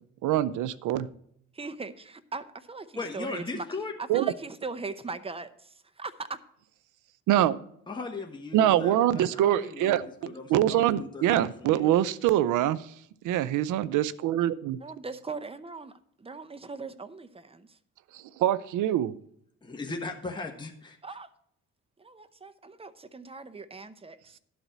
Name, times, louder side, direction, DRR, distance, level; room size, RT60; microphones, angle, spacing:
voice 1, 0.2-1.1 4.1-4.3 7.3-7.6 8.5-10.1 10.5-12.8 13.2-14.8 18.1-19.1, right 12 dB, 80° right, 17 dB, 0.6 m, -24 dB
voice 2, 1.5-3.7 4.0-6.4 14.8-17.8 21.0-21.3 22.0-24.4, right 4 dB, 20° right, 11 dB, 0.7 m, -40 dB
voice 3, 2.9-3.9 7.9-10.0 10.2-11.9 19.6-21.0, left 3 dB, 15° left, 2 dB, 1.2 m, -38 dB
11.5 x 4.1 x 8.0 m, 0.68 s
cardioid pair, 90°, 30 cm